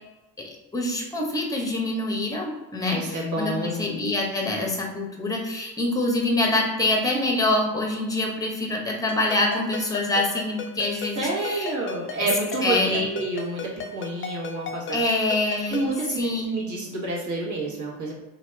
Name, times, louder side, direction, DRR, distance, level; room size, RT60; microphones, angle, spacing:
voice 1, 0.4-11.7 12.1-12.3 12.6-13.1 14.9-15.8 16.2-16.6, left 2 dB, 10° left, 1 dB, 0.8 m, -25 dB
voice 2, 2.8-3.9 11.1-14.9 15.7-16.2 16.5-18.1, right 2 dB, 40° right, -5 dB, 1.4 m, -28 dB
Ringtone, 9.1-15.9, left 5 dB, 30° left, 0.4 m, -36 dB
2.8 x 2.4 x 3.3 m, 1.1 s
supercardioid pair, 70°, 44 cm